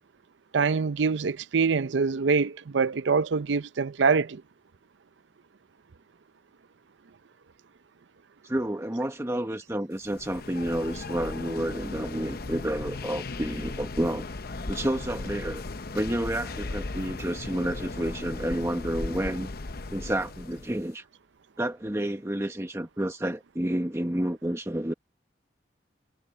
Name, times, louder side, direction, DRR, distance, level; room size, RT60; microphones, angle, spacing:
voice 1, 0.5-4.4, right 5 dB, 85° right, 0.6 m, -24 dB
voice 2, 8.4-14.3 14.7-15.6 15.9-19.5 19.9-21.0 21.6-24.9, right 1 dB, 15° right, 1.0 m, -30 dB
sound 1, 10.0-20.8, left 3 dB, 55° left, 0.8 m, -37 dB
head